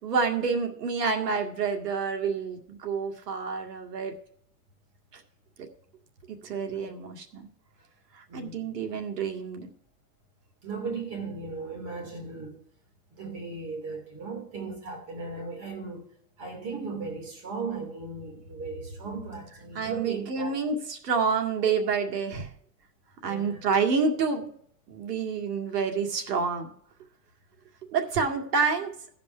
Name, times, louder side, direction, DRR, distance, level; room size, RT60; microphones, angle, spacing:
voice 1, 0.0-4.1 5.1-5.2 6.4-7.5 8.1-9.7 19.7-22.5 23.2-24.4 24.9-26.7 27.9-28.9, right 5 dB, 85° right, 2.2 m, -28 dB
voice 2, 8.3-9.0 10.6-12.6 13.1-16.0 16.4-20.7 23.2-23.6, right 4 dB, 30° right, 2.9 m, -37 dB
15.5 x 5.2 x 5.6 m
supercardioid pair, 160°, 47 cm